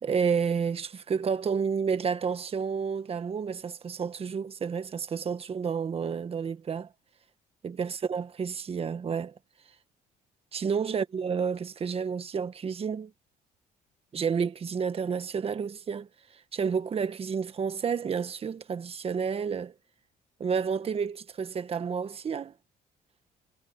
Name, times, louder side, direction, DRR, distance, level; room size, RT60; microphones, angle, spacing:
voice 1, 0.0-6.9 7.6-9.3 10.5-13.1 14.1-19.7 20.4-22.5, right 6 dB, 35° right, 1.5 m, -30 dB
cardioid pair, 110°, 17 cm